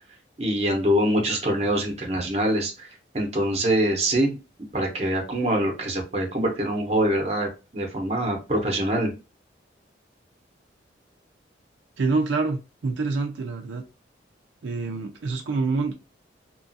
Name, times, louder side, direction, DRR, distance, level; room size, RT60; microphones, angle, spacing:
voice 1, 0.4-2.9 3.1-4.4 4.7-9.1, right 1 dB, 35° right, 0.7 m, -24 dB
voice 2, 12.0-13.8 14.6-15.9, right 3 dB, 75° right, 0.4 m, -26 dB
2.9 x 2.4 x 2.6 m
head